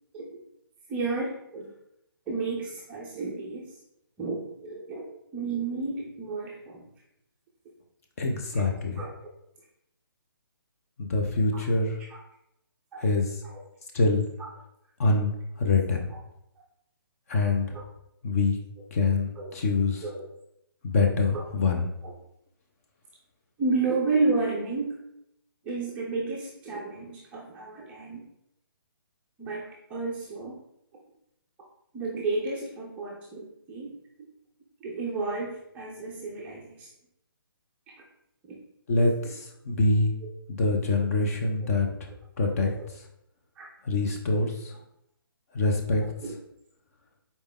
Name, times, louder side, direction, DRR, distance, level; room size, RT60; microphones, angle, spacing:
voice 1, 0.9-1.7 2.3-3.7 4.2-5.0 5.3-6.9 8.5-8.7 9.0-9.3 11.5-12.2 12.9-13.0 13.5-13.6 17.7-17.8 19.4-19.5 20.0-20.3 21.3-21.4 22.0-22.1 23.6-25.0 25.6-28.3 29.4-30.6 31.9-34.0 34.8-36.9 38.5-38.6 40.2-40.3 41.9-42.0 42.8-42.9 43.6-43.7 44.3-44.5 46.0-46.3, right 3 dB, 10° right, -4 dB, 0.5 m, -32 dB
voice 2, 8.2-9.0 11.0-12.0 13.0-13.4 13.9-14.3 15.0-15.3 15.6-16.1 17.3-17.8 18.2-18.6 18.9-20.0 20.8-21.8 38.9-40.1 40.5-41.9 42.4-42.7 43.8-44.7 45.5-46.0, left 3 dB, 40° left, 2 dB, 0.7 m, -25 dB
4.1 x 3.4 x 3.6 m, 0.78 s
hypercardioid pair, 160°, 13 cm